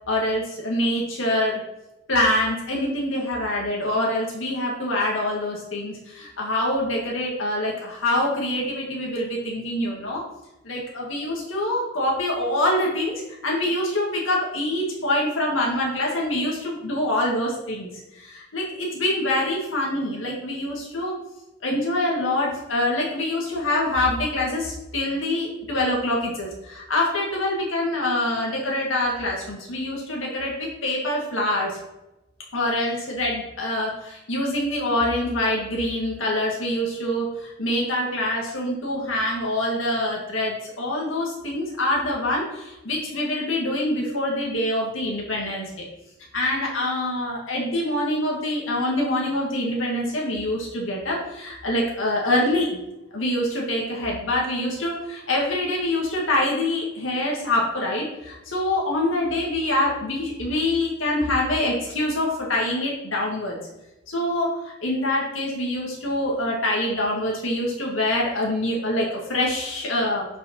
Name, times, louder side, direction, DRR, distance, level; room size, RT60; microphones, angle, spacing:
voice 1, 0.1-1.6 2.1-10.3 10.6-21.2 21.6-31.8 32.5-45.8 46.3-52.8 53.1-63.6 64.1-70.3, left 1 dB, 85° left, -2 dB, 1.9 m, -25 dB
6.4 x 5.3 x 6.0 m, 0.95 s
head